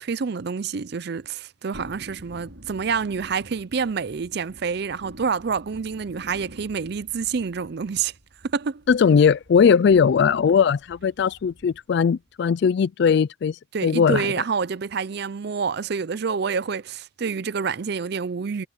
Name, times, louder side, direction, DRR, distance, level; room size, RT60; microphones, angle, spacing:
voice 1, 0.0-8.1 8.4-8.8 13.7-18.7, right 5 dB, 55° right, 0.5 m, -27 dB
Thunderstorm, 1.7-12.0 12.3-12.4, right 1 dB, 85° right, 5.8 m, -48 dB
voice 2, 8.9-14.3, left 6 dB, 60° left, 0.3 m, -19 dB
head